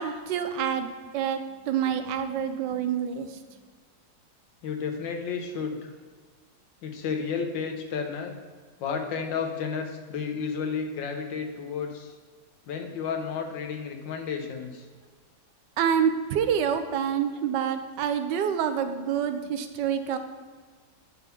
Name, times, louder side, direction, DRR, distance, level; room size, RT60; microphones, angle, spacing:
voice 1, 0.0-3.4 15.8-20.2, right 8 dB, 75° right, 9 dB, 1.3 m, -27 dB
voice 2, 4.6-5.9 6.8-8.3 8.8-12.1 12.7-14.8, left 6 dB, 85° left, 4 dB, 1.7 m, -32 dB
9.9 x 3.7 x 5.9 m, 1.5 s
omnidirectional pair, 2.0 m